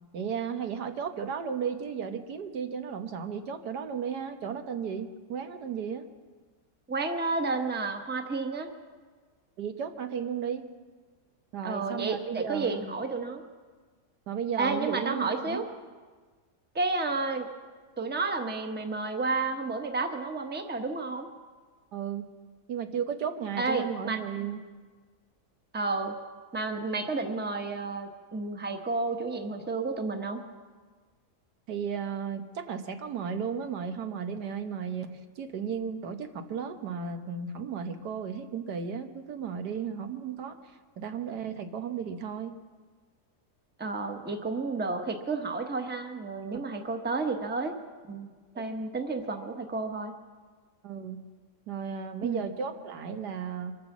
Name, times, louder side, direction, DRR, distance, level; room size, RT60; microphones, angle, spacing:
voice 1, 0.1-6.0 9.6-10.6 11.5-12.9 14.3-15.6 21.9-22.2 22.7-24.6 31.7-40.6 41.0-42.5 46.5-46.6 50.8-51.2 51.7-53.8, right 7 dB, 90° right, 6 dB, 1.7 m, -34 dB
voice 2, 6.9-8.7 11.6-13.4 14.6-15.6 16.7-17.5 18.0-21.3 23.6-24.2 25.7-26.1 26.5-30.4 43.8-47.8 48.1-48.3 48.6-50.1 52.2-52.4, right 3 dB, 10° right, 4 dB, 0.8 m, -31 dB
24.5 x 8.2 x 7.2 m, 1.4 s
omnidirectional pair, 1.7 m